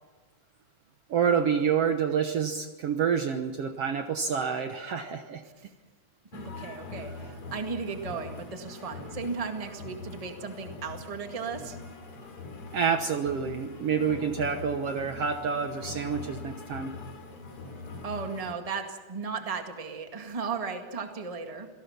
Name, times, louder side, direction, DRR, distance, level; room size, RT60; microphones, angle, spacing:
voice 1, 1.1-5.4 12.7-16.9, right 6 dB, 60° right, 6 dB, 1.9 m, -28 dB
sound 1, 6.3-18.5, left 3 dB, 45° left, 3.5 m, -42 dB
voice 2, 6.3-11.8 18.0-21.7, right 5 dB, 15° right, 4 dB, 1.5 m, -35 dB
27.0 x 18.0 x 6.0 m, 1.3 s
omnidirectional pair, 3.5 m